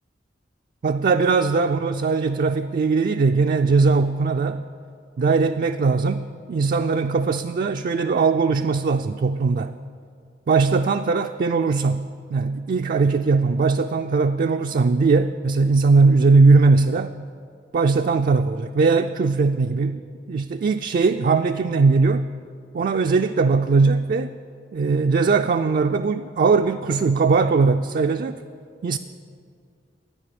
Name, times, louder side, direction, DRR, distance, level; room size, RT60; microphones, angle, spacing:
voice 1, 0.8-4.7 5.2-9.7 10.5-17.1 17.7-22.3 22.7-24.4 24.7-28.4 28.8-29.0, right 4 dB, 50° right, 6 dB, 0.3 m, -20 dB
13.0 x 9.4 x 6.9 m, 2.3 s
head